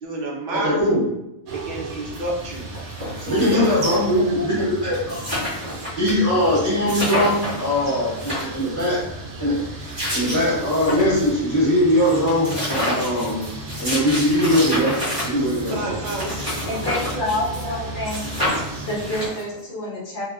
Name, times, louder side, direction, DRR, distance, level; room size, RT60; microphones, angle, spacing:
voice 1, 0.0-0.8 1.5-2.7 3.2-4.4 15.4-16.4, right 2 dB, 55° right, -3 dB, 0.5 m, -30 dB
voice 2, 0.6-1.0 3.3-5.4 6.0-9.0 9.4-9.6 10.1-13.4 13.8-15.9, left 1 dB, 15° left, -9 dB, 0.7 m, -21 dB
sound 1, 1.5-19.3, right 2 dB, 85° right, 1.1 m, -35 dB
sound 2, 2.1-2.2 2.5-4.2 4.6-4.7 4.9-6.1 6.4-6.5 6.9-7.7 8.1-9.0 9.6-11.3 11.7-11.8 12.0-17.8 18.1-19.6, left 1 dB, 15° right, 1.0 m, -29 dB
voice 3, 16.7-18.2 18.9-20.2, left 1 dB, 50° left, -6 dB, 0.7 m, -27 dB
2.6 x 2.1 x 2.4 m, 0.89 s
omnidirectional pair, 1.5 m